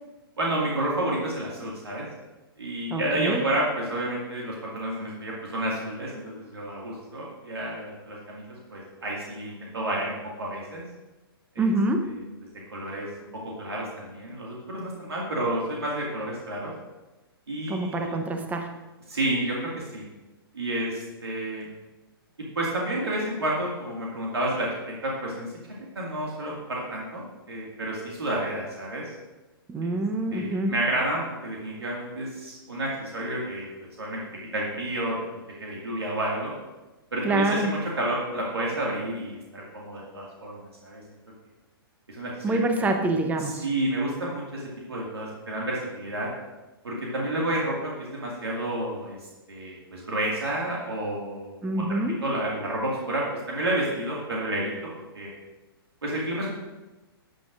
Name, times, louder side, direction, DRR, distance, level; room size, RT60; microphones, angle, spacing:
voice 1, 0.4-2.1 2.6-8.4 8.7-10.8 11.5-11.7 12.7-13.1 13.4-16.7 17.5-18.1 19.1-20.0 20.5-21.7 22.6-24.7 25.0-27.2 27.5-29.0 29.8-30.0 30.3-33.7 34.0-34.2 34.5-35.2 35.6-36.5 37.1-41.0 42.1-42.9 43.4-44.6 44.9-46.3 46.8-49.2 49.5-54.7 55.1-55.3 56.0-56.5, right 1 dB, 85° right, -4 dB, 2.1 m, -30 dB
voice 2, 2.9-3.4 11.6-12.1 17.7-18.7 29.7-30.7 37.2-37.8 42.4-43.7 51.6-52.2, right 2 dB, 10° right, 5 dB, 0.8 m, -26 dB
12.0 x 9.1 x 2.6 m, 1.1 s
hypercardioid pair, 125°, 13 cm